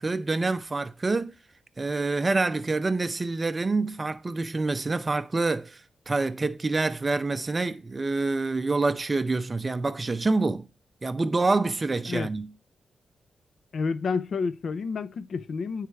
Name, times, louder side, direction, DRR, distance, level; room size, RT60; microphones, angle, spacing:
voice 1, 0.0-1.3 1.8-5.8 6.1-10.7 11.0-12.5, right 3 dB, 25° right, 0.5 m, -26 dB
voice 2, 13.7-15.9, left 5 dB, 60° left, 0.5 m, -29 dB
9.1 x 3.3 x 4.6 m
wide cardioid pair, 150°, 0 cm